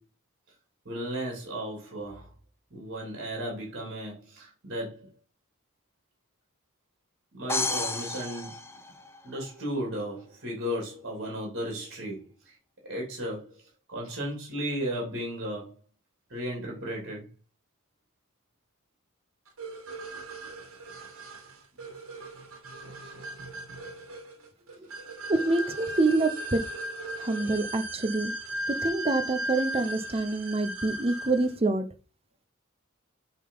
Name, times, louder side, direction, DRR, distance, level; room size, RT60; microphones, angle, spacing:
voice 1, 0.8-2.3 2.7-5.1 7.3-8.6 9.2-12.5 12.8-15.8 16.3-17.3, equal, 50° right, 3.2 m, -35 dB
sound 1, 7.5-9.5, left 3 dB, 10° left, 0.9 m, -32 dB
sound 2, 19.6-31.5, right 1 dB, 70° right, 2.2 m, -37 dB
voice 2, 25.3-26.6 27.2-28.3 28.8-31.9, right 2 dB, 25° right, 0.9 m, -26 dB
8.2 x 4.0 x 5.7 m
head